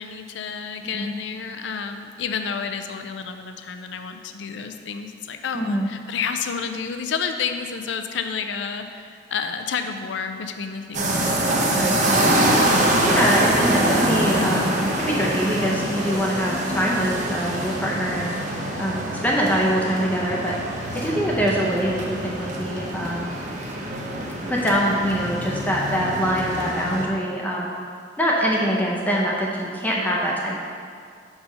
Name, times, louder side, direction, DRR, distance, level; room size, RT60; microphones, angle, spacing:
voice 1, 0.0-11.4, left 6 dB, 70° left, 7 dB, 0.4 m, -30 dB
voice 2, 0.8-1.2 5.5-5.9 11.7-12.3 13.0-18.3 18.8-20.6 20.9-23.3 24.5-27.7 28.2-30.5, equal, 10° left, -3 dB, 0.6 m, -24 dB
sound 1, 10.9-27.0, right 1 dB, 45° right, 0.8 m, -24 dB
5.0 x 4.8 x 5.5 m, 2.2 s
head